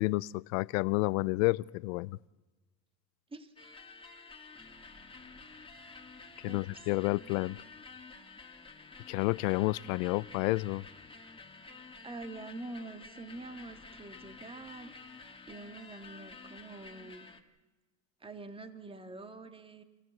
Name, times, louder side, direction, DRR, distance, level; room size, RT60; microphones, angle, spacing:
voice 1, 0.0-2.2 6.4-7.6 9.1-10.9, left 22 dB, 75° left, 0.7 m, -30 dB
sound 1, 3.6-17.4, left 4 dB, 15° left, 2.2 m, -51 dB
voice 2, 6.4-6.9 12.0-15.2 15.5-17.2 18.2-19.8, right 2 dB, 15° right, 1.8 m, -46 dB
29.0 x 16.0 x 7.9 m
supercardioid pair, 105°, 41 cm